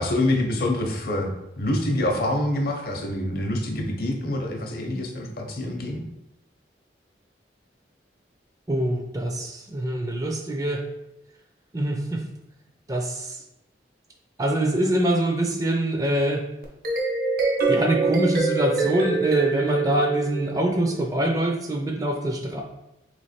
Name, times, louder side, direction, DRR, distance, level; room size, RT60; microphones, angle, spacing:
voice 1, 0.0-6.0, left 1 dB, 55° left, 2 dB, 0.7 m, -26 dB
voice 2, 8.7-10.9 11.7-12.2 12.9-13.4 14.4-16.4 17.7-22.6, right 1 dB, 20° right, 2 dB, 0.5 m, -24 dB
sound 1, 16.6-21.0, right 4 dB, 55° right, 0.9 m, -25 dB
3.3 x 3.1 x 4.2 m, 0.88 s
head